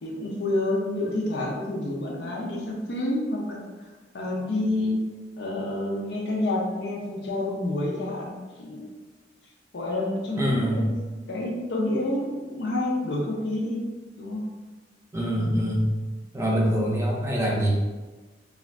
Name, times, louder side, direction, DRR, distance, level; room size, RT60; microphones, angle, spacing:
voice 1, 0.0-3.6 4.1-5.0 5.4-8.9 9.7-10.9 11.3-13.8 14.2-14.5, left 1 dB, 65° left, -1 dB, 0.5 m, -28 dB
voice 2, 10.4-10.9 15.1-15.9 16.3-17.7, equal, 15° right, -3 dB, 0.5 m, -24 dB
2.4 x 2.4 x 3.2 m, 1.3 s
head